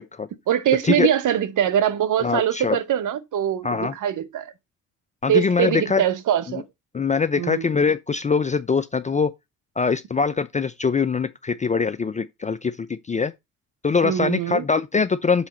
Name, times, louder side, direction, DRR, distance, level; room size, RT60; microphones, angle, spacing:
voice 1, 0.5-4.5 5.3-6.6 7.4-7.7 14.0-14.6, right 10 dB, 50° right, 1.0 m, -23 dB
voice 2, 2.2-2.8 3.6-3.9 5.2-6.0 6.9-9.3 9.8-13.3 13.8-15.5, left 5 dB, 20° left, 0.5 m, -23 dB
5.9 x 5.6 x 4.2 m
hypercardioid pair, 50°, 41 cm